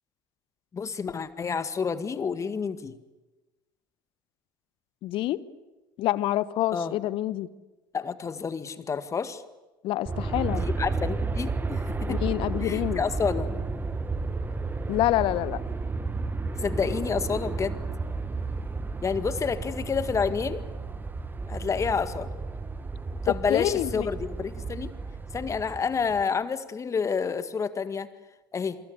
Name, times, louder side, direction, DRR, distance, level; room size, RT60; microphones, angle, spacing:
voice 1, 0.7-2.9 6.7-6.9 7.9-9.4 10.5-12.2 12.6-13.6 16.6-17.8 19.0-20.6 21.5-22.3 23.2-24.9 25.3-28.1 28.5-28.8, left 5 dB, 30° left, 12 dB, 1.9 m, -29 dB
voice 2, 5.0-5.4 6.0-7.5 9.8-10.6 12.1-13.0 14.9-15.6 23.3-24.1, left 14 dB, 55° left, 18 dB, 1.2 m, -27 dB
Aircraft, 10.1-26.2, right 3 dB, 20° right, 1.7 m, -32 dB
27.5 x 24.0 x 8.0 m, 1.1 s
hypercardioid pair, 70°, 11 cm